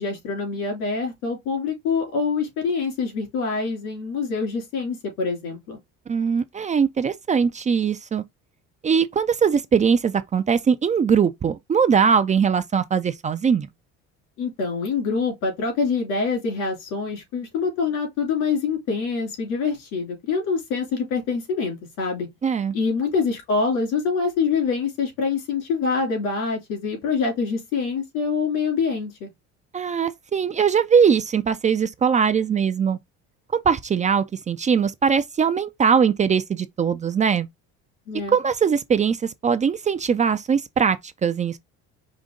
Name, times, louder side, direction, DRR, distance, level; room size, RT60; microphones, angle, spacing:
voice 1, 0.0-5.8 14.4-22.3 22.7-29.3 38.1-38.4, left 5 dB, 85° left, 3.1 m, -25 dB
voice 2, 6.1-8.2 8.8-13.7 22.4-22.8 29.7-33.0 33.5-37.5 38.3-41.6, right 6 dB, 25° right, 0.4 m, -21 dB
5.1 x 2.7 x 3.7 m
supercardioid pair, 100°, 30 cm